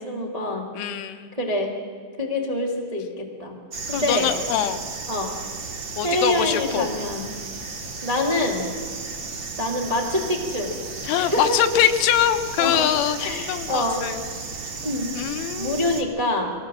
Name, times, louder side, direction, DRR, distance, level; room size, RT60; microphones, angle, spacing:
voice 1, 0.0-0.7 1.4-1.7 2.2-3.6 3.9-4.3 5.1-5.4 6.0-7.3 8.0-8.7 9.6-10.7 11.2-11.6 12.6-12.9 13.2-14.0 14.8-15.1 15.6-16.5, left 1 dB, 35° right, 0 dB, 0.6 m, -25 dB
voice 2, 0.8-1.3 3.9-4.8 6.0-6.9 11.0-14.3 15.1-15.9, left 10 dB, 90° left, 8 dB, 3.6 m, -23 dB
sound 1, 3.7-16.0, right 4 dB, 65° right, 1.1 m, -34 dB
22.5 x 17.0 x 7.5 m, 2.1 s
omnidirectional pair, 5.4 m